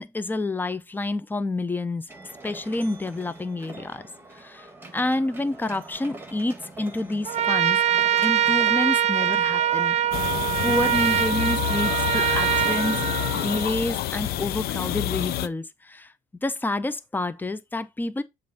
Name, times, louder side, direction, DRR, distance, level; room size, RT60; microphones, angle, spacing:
voice 1, 0.0-2.1 2.4-4.0 4.3-4.7 4.9-7.8 8.2-10.0 10.6-13.0 13.3-16.1 16.4-18.2, left 2 dB, 10° left, 0.6 m, -28 dB
sound 1, 2.1-13.7, right 2 dB, 10° right, 1.4 m, -44 dB
Trumpet, 7.2-13.8, right 11 dB, 40° right, 0.4 m, -23 dB
sound 2, 10.1-15.5, left 13 dB, 65° left, 0.5 m, -28 dB
7.3 x 2.6 x 5.6 m
cardioid pair, 110°, 17 cm